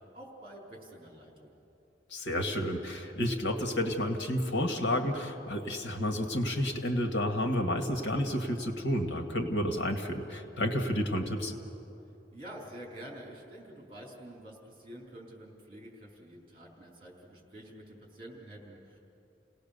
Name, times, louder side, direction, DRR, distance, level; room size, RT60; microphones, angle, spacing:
voice 1, 0.1-1.5 12.3-19.0, right 1 dB, 30° right, -2 dB, 4.1 m, -48 dB
voice 2, 2.1-11.5, left 1 dB, 85° left, 5 dB, 1.9 m, -31 dB
29.5 x 18.0 x 6.8 m, 2.8 s
head